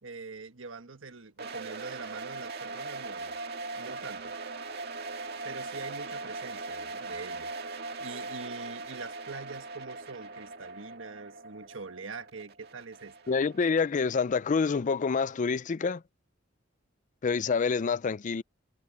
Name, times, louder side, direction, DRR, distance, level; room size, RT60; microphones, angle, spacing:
voice 1, 0.0-3.3 3.7-4.3 5.4-7.5 8.0-13.1, right 4 dB, 85° right, 1.4 m, -44 dB
sound 1, 1.4-14.2, right 3 dB, 55° right, 2.0 m, -40 dB
voice 2, 13.3-16.0 17.2-18.4, left 5 dB, 40° left, 0.4 m, -27 dB
head